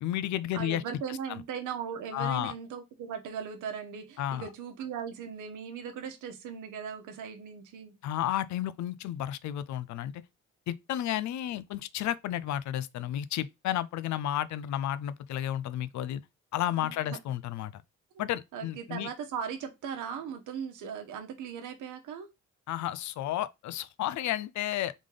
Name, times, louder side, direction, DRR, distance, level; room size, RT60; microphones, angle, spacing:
voice 1, 0.0-0.8 2.1-2.5 4.2-4.5 8.0-10.2 10.7-16.2 16.5-17.8 18.2-19.1 22.7-24.9, left 12 dB, 70° left, 0.5 m, -32 dB
voice 2, 0.5-7.9 16.8-17.2 18.5-22.3, right 7 dB, 85° right, 1.1 m, -38 dB
3.7 x 3.3 x 3.7 m
cardioid pair, 90°, 30 cm